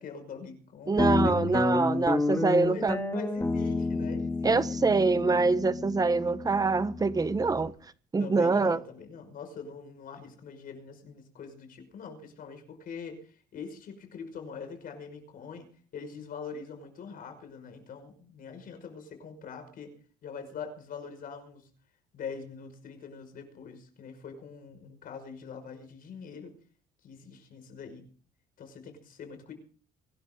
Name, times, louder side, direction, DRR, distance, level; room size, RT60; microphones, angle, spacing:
voice 1, 0.0-1.8 2.4-4.8 8.2-15.7 15.9-19.9 20.2-21.7 22.1-26.5 27.0-28.1 28.6-29.5, left 5 dB, 60° left, 5.6 m, -43 dB
voice 2, 0.9-3.0 4.4-7.7 8.1-8.8, right 4 dB, 20° right, 1.1 m, -25 dB
Guitar, 1.0-7.7, left 3 dB, 15° left, 2.5 m, -30 dB
23.5 x 12.5 x 3.8 m
cardioid pair, 110°, 17 cm